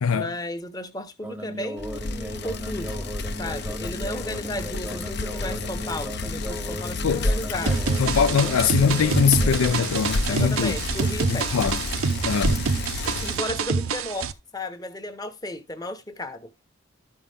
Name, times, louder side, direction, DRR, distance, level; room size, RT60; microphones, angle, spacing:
voice 1, 0.1-3.1 3.4-7.8 8.3-8.5 10.3-11.5 13.1-16.5, left 1 dB, 20° left, 0.9 m, -34 dB
sound 1, 1.2-10.0, right 1 dB, 10° right, 0.5 m, -36 dB
Bicycle, 1.8-13.5, left 2 dB, 50° left, 0.6 m, -30 dB
sound 2, 7.7-14.3, right 5 dB, 85° right, 0.6 m, -27 dB
voice 2, 8.0-10.8 11.3-11.8 12.2-12.6, left 6 dB, 90° left, 0.5 m, -22 dB
13.0 x 5.6 x 3.4 m
head